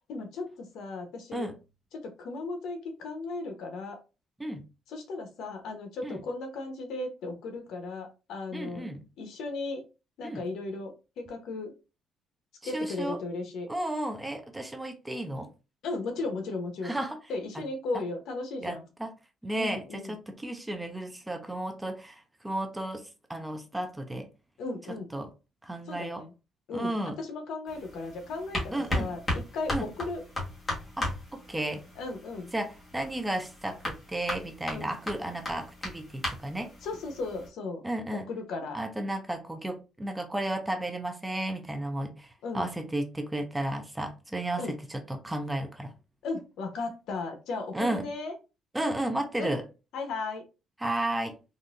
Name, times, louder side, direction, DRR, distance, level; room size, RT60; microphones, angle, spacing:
voice 1, 0.1-1.5 1.9-4.0 4.9-8.9 9.2-9.8 10.2-11.7 12.6-13.7 15.8-17.0 17.3-18.8 19.6-20.1 24.6-25.1 25.9-26.3 26.7-30.2 32.0-32.5 34.7-34.9 36.8-37.8 38.1-38.8 42.4-42.6 44.6-44.8 46.2-48.3 49.4-49.5 49.9-50.5, left 3 dB, 70° left, 1.0 m, -36 dB
voice 2, 8.5-9.0 10.2-10.4 12.6-13.2 13.7-15.5 16.8-17.2 17.9-18.0 18.6-19.1 19.4-24.3 24.9-25.3 25.6-26.2 26.7-27.2 28.7-29.1 29.7-29.9 31.0-31.8 32.5-36.7 37.8-38.3 38.7-42.3 42.5-45.9 47.7-48.1 48.7-49.6 50.8-51.4, right 1 dB, 10° right, 0.5 m, -33 dB
sound 1, 27.7-37.5, left 1 dB, 20° left, 1.4 m, -37 dB
3.8 x 2.6 x 2.5 m
cardioid pair, 140°, 0 cm